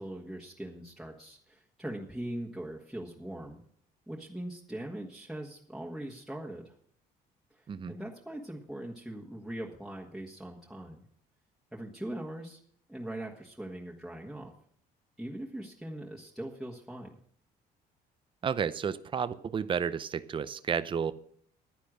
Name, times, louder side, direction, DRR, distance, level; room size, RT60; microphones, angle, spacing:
voice 1, 0.0-3.6 4.1-6.7 7.5-11.0 11.7-12.6 12.9-14.5 15.2-17.2, right 1 dB, ahead, -3 dB, 1.5 m, -41 dB
voice 2, 18.4-21.1, right 7 dB, 30° right, 14 dB, 0.6 m, -31 dB
10.5 x 10.0 x 6.2 m, 0.62 s
cardioid pair, 110°, 17 cm